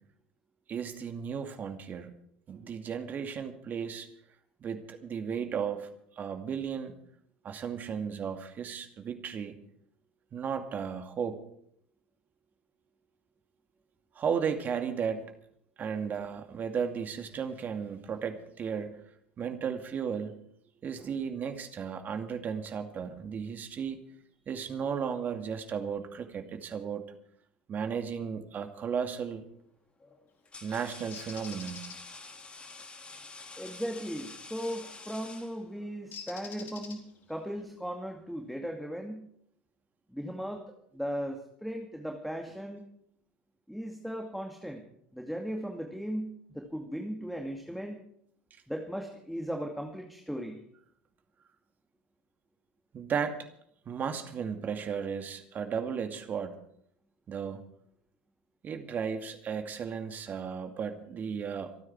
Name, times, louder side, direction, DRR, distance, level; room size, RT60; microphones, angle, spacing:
voice 1, 0.7-2.1 2.5-4.1 4.6-5.9 6.2-6.9 7.4-9.6 10.3-11.4 14.2-15.2 15.8-19.0 19.4-20.3 20.8-24.0 24.5-27.1 27.7-29.4 30.6-31.9 52.9-53.5 53.9-56.5 57.3-57.6 58.6-61.7, right 7 dB, 40° right, 6 dB, 2.4 m, -34 dB
sound 1, 28.9-29.2 30.0-36.0, left 3 dB, 20° left, 3.2 m, -48 dB
Bird, 31.1-32.0 34.6-34.8 36.1-37.3, left 6 dB, 45° left, 3.9 m, -45 dB
voice 2, 33.6-39.2 40.1-42.9 43.7-44.8 45.1-48.0 48.7-50.6, equal, ahead, 3 dB, 2.3 m, -37 dB
27.0 x 9.6 x 4.8 m, 0.70 s
hypercardioid pair, 75°, 5 cm